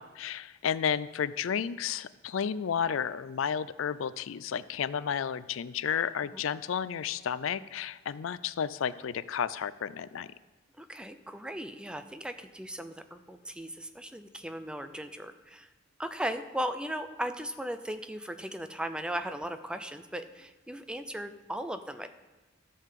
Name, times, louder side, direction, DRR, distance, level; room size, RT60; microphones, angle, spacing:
voice 1, 0.0-10.3, left 7 dB, 75° left, 16 dB, 0.4 m, -32 dB
voice 2, 10.8-15.7 16.0-22.1, right 1 dB, 5° right, 9 dB, 0.5 m, -37 dB
13.5 x 5.5 x 7.6 m, 1.2 s
head